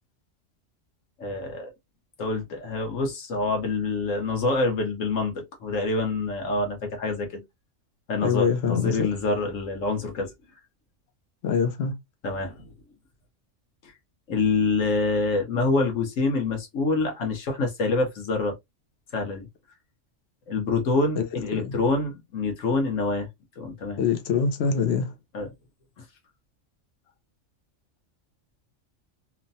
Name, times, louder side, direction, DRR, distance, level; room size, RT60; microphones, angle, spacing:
voice 1, 1.2-1.7 2.2-7.4 8.1-10.3 12.2-12.7 13.8-13.9 14.3-18.5 19.1-19.5 20.5-23.3 23.6-24.0 25.3-25.5, left 3 dB, 85° left, 1.3 m, -26 dB
voice 2, 8.2-9.0 11.4-11.9 21.2-21.3 21.5-21.7 24.0-25.1, left 6 dB, 65° left, 0.8 m, -24 dB
3.0 x 2.2 x 2.6 m
omnidirectional pair, 1.3 m